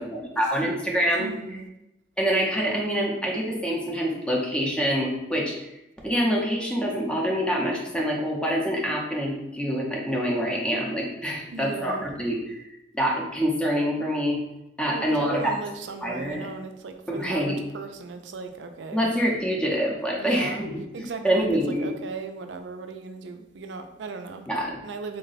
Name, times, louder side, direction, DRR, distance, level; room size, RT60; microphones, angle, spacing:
voice 1, 0.0-1.3 2.2-5.7 6.0-12.6 12.9-14.4 14.8-15.5 16.0-16.5 17.1-17.6 18.9-20.8 21.2-21.9 24.5-24.8, equal, 5° left, -2 dB, 0.6 m, -26 dB
voice 2, 1.2-1.7 11.5-12.1 14.9-19.1 20.2-20.7 20.9-25.2, right 4 dB, 75° right, 6 dB, 0.4 m, -37 dB
3.7 x 2.2 x 4.0 m, 0.89 s
head